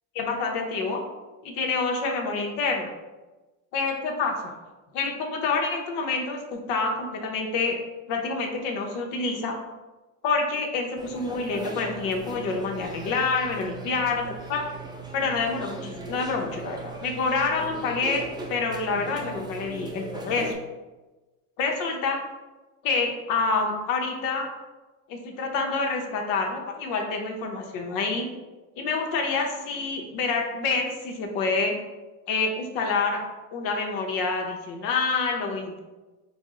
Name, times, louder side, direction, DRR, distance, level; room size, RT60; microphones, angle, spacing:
voice 1, 0.1-1.0 1.4-2.9 3.7-4.6 4.9-7.8 8.1-9.6 10.2-14.6 15.1-18.2 18.5-20.5 21.6-22.2 22.8-24.5 25.1-28.3 28.8-31.7 32.3-33.2 33.5-35.8, left 4 dB, 80° left, 1 dB, 0.8 m, -27 dB
sound 1, 11.0-20.5, right 2 dB, 15° right, 0.4 m, -39 dB
5.0 x 2.0 x 3.7 m, 1.2 s
cardioid pair, 125°, 33 cm